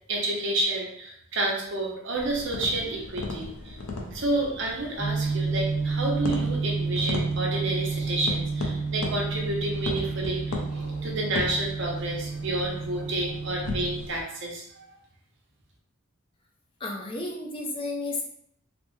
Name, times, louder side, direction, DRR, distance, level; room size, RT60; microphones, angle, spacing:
voice 1, 0.1-3.8 4.1-14.9, right 2 dB, 60° right, -2 dB, 0.7 m, -30 dB
sound 1, 2.2-14.2, left 2 dB, 90° left, 0.5 m, -37 dB
sound 2, 5.0-14.0, right 4 dB, ahead, 1.2 m, -30 dB
voice 2, 16.8-18.2, left 2 dB, 25° left, 0 dB, 0.4 m, -32 dB
3.3 x 2.0 x 3.0 m, 0.72 s
head